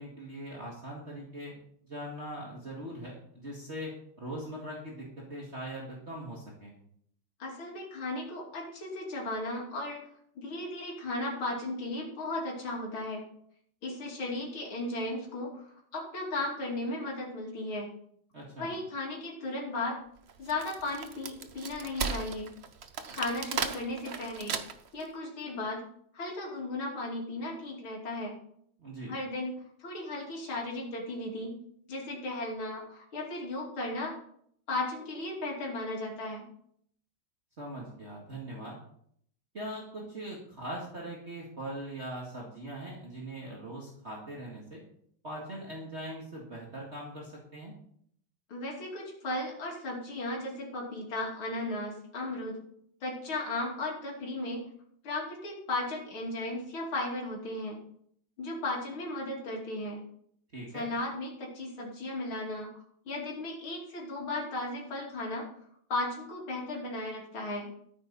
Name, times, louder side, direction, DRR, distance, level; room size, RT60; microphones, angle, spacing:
voice 1, 0.0-1.5 1.8-6.7 18.3-18.7 28.8-29.1 37.6-38.8 39.5-44.8 45.2-47.7 60.5-60.9, right 1 dB, 35° right, -3 dB, 2.3 m, -41 dB
voice 2, 7.4-10.1 10.4-13.2 13.8-15.6 15.9-17.9 18.6-20.0 20.4-22.5 23.1-24.6 24.9-25.8 26.1-28.3 29.1-29.5 29.8-31.6 31.9-34.2 34.7-36.5 48.5-52.6 53.0-54.6 55.0-57.8 58.4-60.0 60.7-62.7 63.1-65.5 65.9-67.7, left 2 dB, 80° left, -2 dB, 3.5 m, -35 dB
Wood, 20.3-25.0, right 6 dB, 50° right, 0.7 m, -36 dB
14.0 x 9.2 x 4.2 m, 0.66 s
omnidirectional pair, 2.2 m